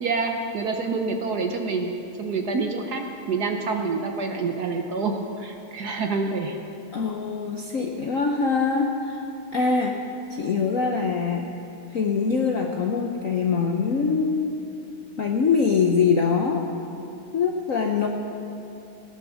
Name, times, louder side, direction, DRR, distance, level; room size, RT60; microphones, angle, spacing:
voice 1, 0.0-1.9 2.2-6.6, right 4 dB, 60° right, 4 dB, 1.2 m, -27 dB
voice 2, 6.9-9.2 9.5-10.0 10.3-11.5 11.9-14.6 15.2-16.7 17.3-18.1, left 5 dB, 60° left, 2 dB, 0.8 m, -23 dB
17.0 x 9.8 x 6.3 m, 2.8 s
omnidirectional pair, 2.4 m